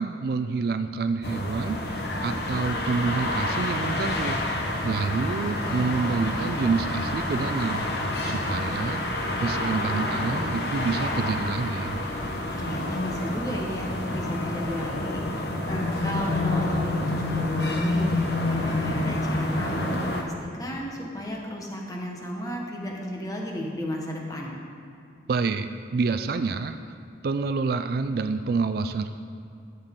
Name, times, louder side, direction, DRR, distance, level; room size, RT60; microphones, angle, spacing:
voice 1, 0.0-4.4 4.8-9.0 9.4-12.0 25.3-26.8 27.2-29.1, right 4 dB, 55° right, 9 dB, 0.3 m, -28 dB
sound 1, 1.2-20.2, left 1 dB, 60° left, 1.0 m, -28 dB
voice 2, 12.5-18.1 18.5-24.6, equal, 20° left, -1 dB, 1.2 m, -33 dB
13.0 x 8.0 x 3.8 m, 2.5 s
head